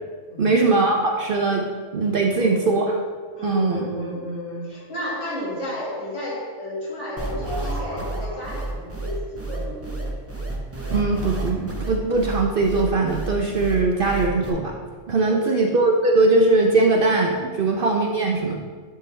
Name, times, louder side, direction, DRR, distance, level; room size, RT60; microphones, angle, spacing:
voice 1, 0.4-1.6 1.9-3.0 3.4-3.8 10.9-14.8 15.1-18.6, right 3 dB, 55° right, 1 dB, 0.7 m, -20 dB
voice 2, 2.3-2.8 3.3-10.2 15.2-15.6, equal, 65° left, -6 dB, 2.4 m, -32 dB
sound 1, 7.0-8.8, right 1 dB, 20° left, 1.7 m, -38 dB
sound 2, 7.2-14.5, right 2 dB, 15° right, 0.5 m, -30 dB
10.0 x 4.6 x 3.3 m, 1.6 s
omnidirectional pair, 1.3 m